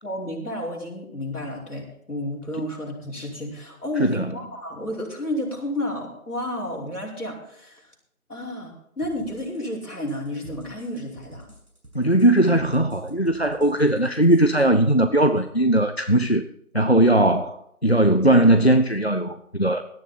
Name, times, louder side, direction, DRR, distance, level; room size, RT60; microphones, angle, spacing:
voice 1, 0.0-7.8 8.3-11.5, left 1 dB, 80° left, 5.4 m, -31 dB
voice 2, 4.0-4.3 11.9-16.4 16.7-19.8, right 1 dB, 45° left, 0.5 m, -19 dB
sound 1, 9.0-14.6, right 1 dB, 80° right, 6.8 m, -46 dB
17.0 x 10.5 x 4.2 m
figure-of-eight pair, 180°, 44 cm